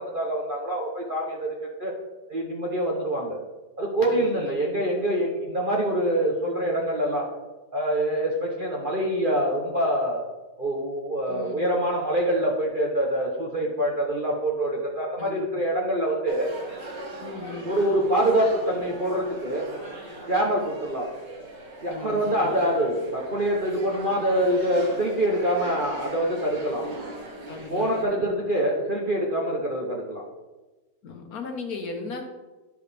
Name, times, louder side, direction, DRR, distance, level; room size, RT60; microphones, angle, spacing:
voice 1, 0.0-1.9 2.3-3.4 3.8-7.3 7.7-10.2 10.6-16.5 17.6-19.7 20.3-21.1 21.8-26.9 27.7-30.2, right 1 dB, 40° right, -2 dB, 0.8 m, -25 dB
voice 2, 6.5-6.9 11.3-11.7 15.2-15.4 17.2-17.9 21.9-22.5 27.5-28.3 31.0-32.2, left 3 dB, 60° left, 4 dB, 1.3 m, -37 dB
sound 1, 16.3-28.0, right 1 dB, 85° right, 2.6 m, -40 dB
10.5 x 5.0 x 3.3 m, 1.2 s
omnidirectional pair, 1.8 m